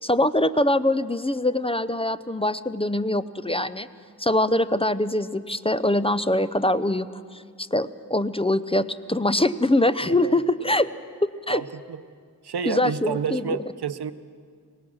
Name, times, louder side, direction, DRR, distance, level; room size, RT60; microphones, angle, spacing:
voice 1, 0.0-3.9 4.2-10.9 11.2-11.6 12.7-13.6, left 1 dB, 15° left, 14 dB, 0.6 m, -23 dB
voice 2, 10.0-10.4 11.5-12.0 12.4-14.1, right 7 dB, 90° right, 13 dB, 0.8 m, -30 dB
24.0 x 19.5 x 6.3 m, 2.1 s
wide cardioid pair, 70°, 38 cm